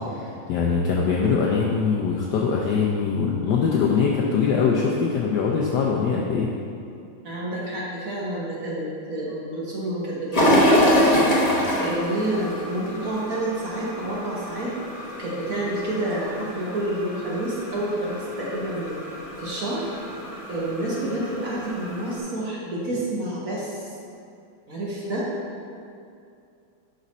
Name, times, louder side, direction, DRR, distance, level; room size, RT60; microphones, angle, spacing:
voice 1, 0.1-6.5, left 5 dB, 75° left, -2 dB, 1.0 m, -22 dB
voice 2, 5.9-6.3 7.2-11.2 11.8-14.7 15.2-19.0 19.4-19.9 20.5-23.9 24.7-25.3, right 1 dB, 50° right, -6 dB, 1.2 m, -29 dB
sound 1, 10.3-22.2, equal, 40° left, 0.5 m, -26 dB
6.4 x 5.1 x 4.1 m, 2.5 s
omnidirectional pair, 2.4 m